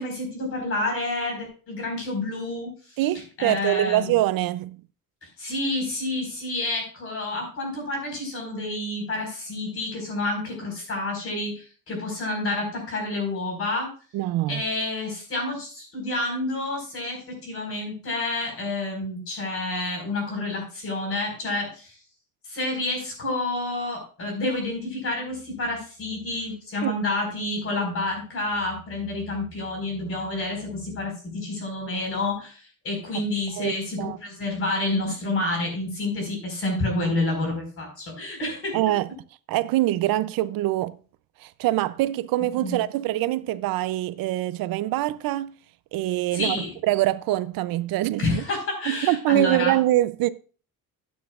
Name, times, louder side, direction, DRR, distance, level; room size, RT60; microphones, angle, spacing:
voice 1, 0.0-3.0 3.4-4.1 5.2-13.9 14.5-22.0 22.4-38.7 42.6-42.8 46.3-46.7 48.2-49.8, left 2 dB, 40° left, 4.9 m, -29 dB
voice 2, 3.0-4.8 14.1-14.6 26.8-26.9 33.6-34.2 38.7-39.1 39.5-41.0 41.4-45.5 45.9-48.4 48.9-50.3, right 15 dB, 75° right, 0.6 m, -24 dB
13.0 x 9.0 x 2.4 m
cardioid pair, 155°, 36 cm